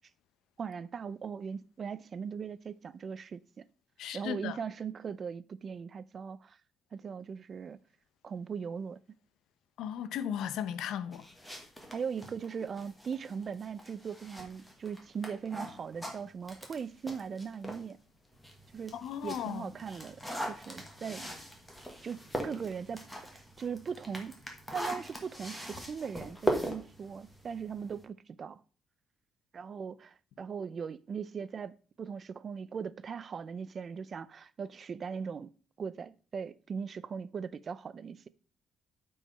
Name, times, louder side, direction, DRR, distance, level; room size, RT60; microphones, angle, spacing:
voice 1, 0.6-3.6 4.1-6.6 6.9-7.8 8.2-9.0 11.9-18.0 18.7-18.9 19.2-21.3 22.0-23.0 23.3-24.3 24.7-28.6 29.5-35.5 35.8-38.3, right 6 dB, 35° right, 0.4 m, -39 dB
voice 2, 4.0-4.6 9.8-11.3 18.9-19.7, left 9 dB, 75° left, 0.7 m, -36 dB
sound 1, 11.1-17.9 18.3-28.0, equal, 5° left, 1.4 m, -40 dB
8.9 x 4.7 x 5.5 m
cardioid pair, 175°, 0 cm